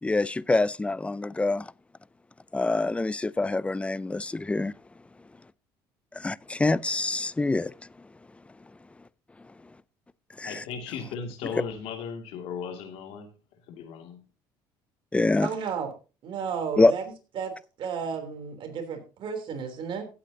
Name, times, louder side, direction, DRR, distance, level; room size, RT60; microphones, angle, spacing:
voice 1, 0.0-1.7 2.5-4.7 6.1-7.7 10.4-10.6 15.1-15.5 16.8-16.9, left 2 dB, 10° left, 0.4 m, -25 dB
voice 2, 10.4-13.3 13.7-14.2, left 6 dB, 70° left, 2.4 m, -36 dB
voice 3, 15.4-15.9 16.2-17.0 17.3-17.5 17.8-20.1, right 6 dB, 55° right, 3.4 m, -33 dB
16.0 x 8.5 x 2.8 m
supercardioid pair, 85°, 10 cm